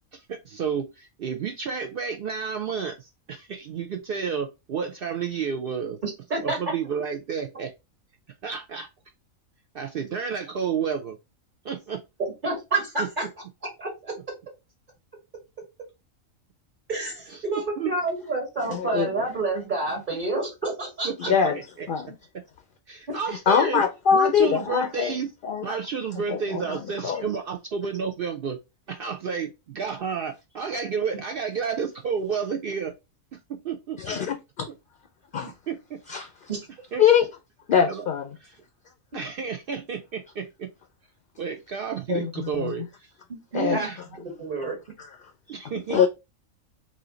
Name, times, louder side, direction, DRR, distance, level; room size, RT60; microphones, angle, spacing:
voice 1, 0.1-6.0 6.4-7.7 8.4-8.9 9.7-11.2 11.6-12.0 17.3-17.4 17.8-17.9 21.0-21.9 22.9-23.8 24.1-25.3 25.6-28.6 28.9-32.9 33.3-34.2 35.7-36.0 36.9-37.0 37.9-38.0 38.4-38.5 39.1-40.7 41.4-43.1 43.5-44.0 45.5-46.1, right 6 dB, 65° right, 0.5 m, -31 dB
voice 2, 6.0-6.6 12.4-13.3 13.8-14.2 16.9-21.3 36.5-36.7 43.3-43.9 44.4-44.8, right 3 dB, 40° right, 1.4 m, -29 dB
voice 3, 18.6-19.3 21.2-21.6 21.9-22.1 23.5-25.1 25.4-25.8 26.3-27.2 34.0-34.7 35.3-35.5 36.1-36.3 37.0-37.3 37.7-38.3 42.1-42.7 43.5-43.8 45.5-46.1, left 7 dB, 60° left, 0.5 m, -23 dB
4.2 x 2.6 x 3.7 m
omnidirectional pair, 1.4 m